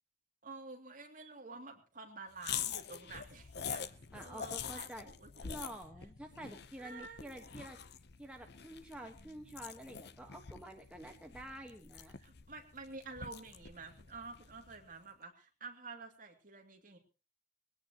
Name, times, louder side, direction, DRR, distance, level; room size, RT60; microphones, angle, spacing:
voice 1, 0.4-5.5 6.8-7.3 12.2-17.0, right 3 dB, 40° right, 3 dB, 2.7 m, -50 dB
sound 1, 2.4-14.9, left 8 dB, 55° left, 0.7 m, -45 dB
voice 2, 4.1-5.1 5.4-7.8 8.2-12.2, right 1 dB, 5° right, 2 dB, 1.3 m, -49 dB
21.0 x 17.0 x 3.0 m, 0.33 s
head